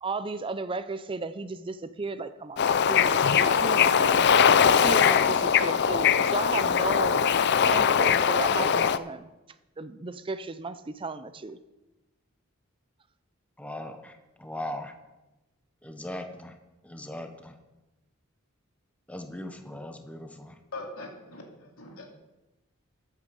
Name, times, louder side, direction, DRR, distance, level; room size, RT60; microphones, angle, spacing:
voice 1, 0.0-4.2 4.8-7.3 7.6-9.3 9.8-11.6, right 3 dB, 25° right, 12 dB, 0.5 m, -35 dB
Bird / Ocean, 2.6-9.0, left 7 dB, 55° left, 0.5 m, -21 dB
voice 2, 4.9-5.2 13.6-14.1 14.4-14.9 15.8-16.5 16.8-17.5 19.1-20.5, left 1 dB, 5° left, 6 dB, 0.9 m, -38 dB
voice 3, 20.7-22.1, left 2 dB, 85° left, 1 dB, 2.6 m, -41 dB
14.5 x 8.4 x 5.3 m, 1.0 s
head